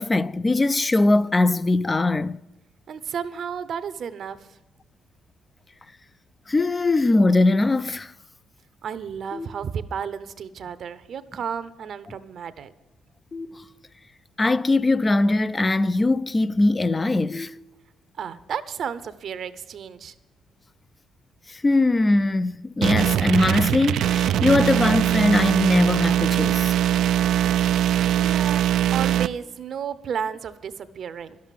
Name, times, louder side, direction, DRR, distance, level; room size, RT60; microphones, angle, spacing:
voice 1, 0.0-2.4 6.5-8.1 14.4-17.5 21.5-26.7, left 2 dB, 25° left, 0.4 m, -21 dB
voice 2, 2.9-4.5 8.8-12.7 18.2-20.1 28.1-28.6 28.9-31.4, right 7 dB, 60° right, 0.7 m, -32 dB
sound 1, 9.3-10.3 13.3-14.3 17.3-18.3, left 3 dB, 65° left, 3.3 m, -41 dB
sound 2, 22.8-29.3, right 11 dB, 80° right, 0.3 m, -21 dB
11.0 x 7.5 x 9.2 m
cardioid pair, 90°, 0 cm